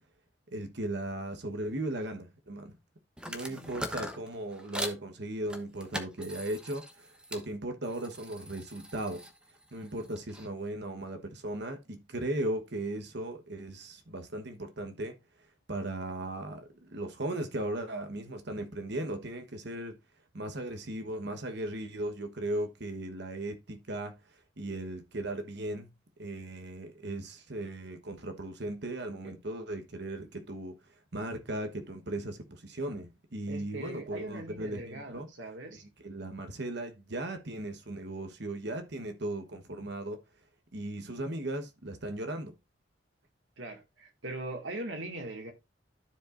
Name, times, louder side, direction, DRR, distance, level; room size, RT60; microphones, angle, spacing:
voice 1, 0.5-2.7 3.3-9.3 9.7-15.2 15.7-20.0 20.3-24.2 24.6-25.9 26.2-30.8 31.1-35.3 36.0-40.2 40.7-42.5, right 1 dB, 60° right, 1.2 m, -37 dB
sound 1, 3.2-5.0 5.5-7.5 7.8-10.5, equal, 5° right, 0.8 m, -41 dB
voice 2, 33.5-35.8 43.6-45.5, right 2 dB, 90° right, 2.0 m, -40 dB
13.5 x 4.9 x 2.5 m
head